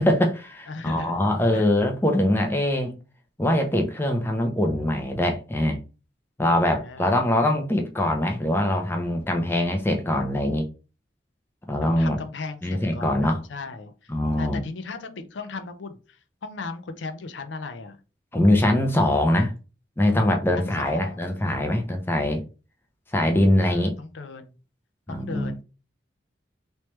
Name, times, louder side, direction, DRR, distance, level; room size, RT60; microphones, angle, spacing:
voice 1, 0.0-2.9 3.4-5.8 6.4-10.7 11.7-12.2 12.6-13.4 14.1-14.6 18.3-19.5 20.0-22.4 23.1-23.9 25.1-25.5, left 1 dB, 10° left, 0.5 m, -23 dB
voice 2, 0.7-1.2 1.5-1.7 6.7-7.2 11.8-14.1 14.4-18.0 20.6-21.2 23.6-24.5 25.1-25.6, left 3 dB, 85° left, 0.5 m, -37 dB
3.1 x 3.1 x 3.1 m
head